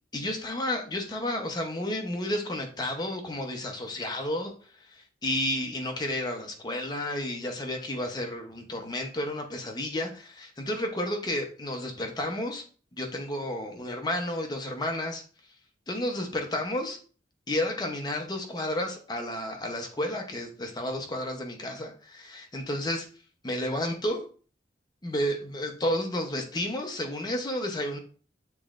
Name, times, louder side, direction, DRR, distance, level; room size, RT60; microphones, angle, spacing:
voice 1, 0.1-4.5 4.9-12.6 13.0-15.2 15.9-17.0 17.5-23.0 23.4-24.2 25.0-28.0, left 1 dB, 25° left, 2 dB, 0.8 m, -31 dB
7.0 x 3.1 x 2.5 m, 0.40 s
head